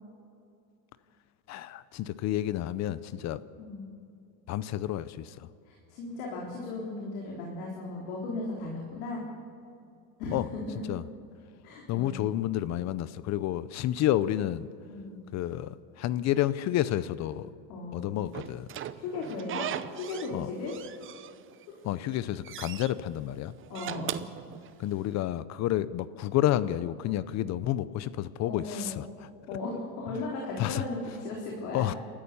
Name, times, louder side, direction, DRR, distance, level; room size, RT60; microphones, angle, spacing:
voice 1, 1.5-3.4 4.5-5.5 10.3-10.5 10.9-11.0 11.9-14.7 15.3-17.5 17.9-18.7 20.3-20.5 21.8-23.5 24.8-29.1 30.6-30.8 31.7-32.0, left 13 dB, 35° left, 17 dB, 0.5 m, -30 dB
voice 2, 3.6-3.9 5.6-9.2 10.2-10.8 11.6-12.3 14.9-15.2 17.7-18.1 19.0-19.7 19.9-20.7 21.7-21.8 23.7-24.2 28.4-29.0 29.5-31.8, left 3 dB, 70° left, -2 dB, 4.0 m, -36 dB
Slam / Squeak, 18.3-20.4 20.7-21.6 22.0-22.9 23.6-25.1, right 11 dB, 25° right, 0.6 m, -39 dB
29.5 x 13.5 x 6.9 m, 2.5 s
supercardioid pair, 135°, 48 cm